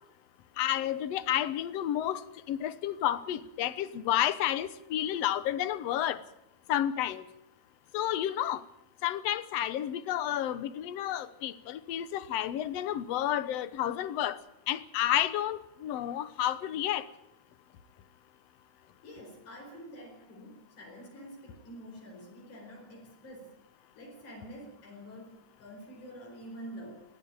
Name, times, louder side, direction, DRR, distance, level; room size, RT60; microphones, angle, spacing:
voice 1, 0.6-2.2 2.5-6.2 6.7-7.2 7.9-8.6 9.0-14.4 14.7-17.0, left 12 dB, 65° left, 1.9 m, -30 dB
voice 2, 19.0-23.5 24.0-27.0, equal, 85° left, 6.2 m, -47 dB
21.0 x 15.0 x 8.8 m
omnidirectional pair, 3.4 m